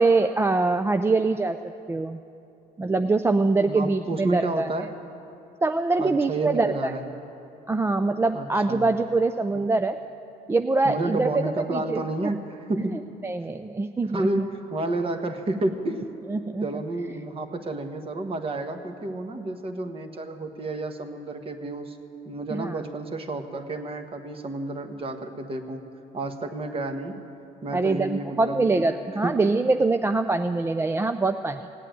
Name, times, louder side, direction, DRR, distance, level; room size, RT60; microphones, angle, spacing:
voice 1, 0.0-1.6 1.9-2.2 2.8-4.7 5.6-6.9 7.7-10.0 10.5-11.3 11.7-12.0 13.2-14.3 16.3-16.7 22.5-22.8 27.7-31.6, right 3 dB, 15° right, 8 dB, 0.4 m, -23 dB
voice 2, 3.7-5.0 6.0-7.1 8.3-8.8 9.5-9.6 10.8-13.1 14.1-16.0 16.6-22.0 22.2-25.9 26.1-27.2 27.6-28.8 29.2-29.4, right 2 dB, 35° right, 6 dB, 1.3 m, -30 dB
17.0 x 8.4 x 9.3 m, 2.8 s
cardioid pair, 110°, 17 cm